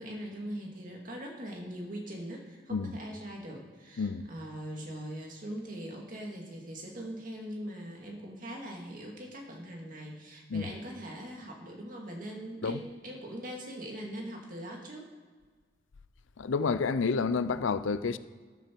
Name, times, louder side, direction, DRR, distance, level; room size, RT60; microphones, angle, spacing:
voice 1, 0.0-15.1, equal, 45° right, 2.3 m, -41 dB
voice 2, 4.0-4.3 10.5-10.7 12.6-12.8 16.4-18.2, left 4 dB, 85° left, 0.5 m, -29 dB
13.0 x 7.8 x 4.6 m
head